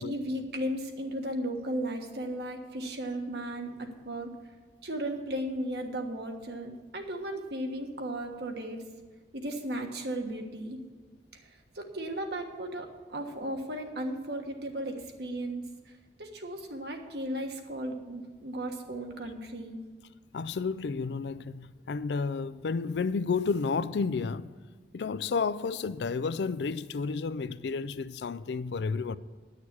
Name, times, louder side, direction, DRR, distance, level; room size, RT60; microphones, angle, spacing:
voice 1, 0.0-4.3 4.8-8.8 9.3-10.8 11.3-11.5 11.7-15.9 16.2-19.8, right 1 dB, 65° right, 1.4 m, -35 dB
voice 2, 20.3-24.5 24.9-29.2, left 4 dB, 75° left, 0.4 m, -31 dB
11.0 x 6.6 x 8.5 m
head